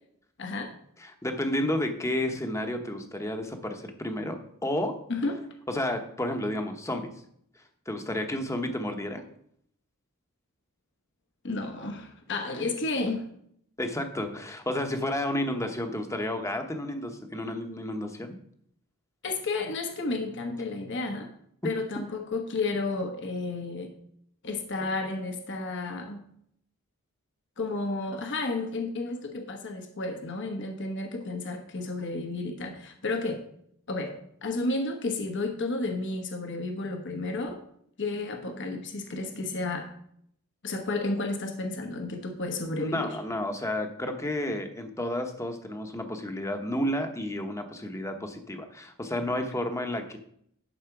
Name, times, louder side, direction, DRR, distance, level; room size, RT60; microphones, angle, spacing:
voice 1, 0.4-0.7 5.1-5.4 11.4-13.3 19.2-21.3 21.6-23.9 24.4-26.3 27.6-33.5 33.9-37.6 38.0-39.9 40.6-43.2, left 3 dB, 55° left, 4 dB, 1.1 m, -32 dB
voice 2, 1.0-5.0 5.7-7.1 7.9-9.2 13.8-18.4 42.8-50.2, left 1 dB, 15° left, 5 dB, 1.0 m, -31 dB
11.5 x 4.3 x 5.9 m, 0.68 s
head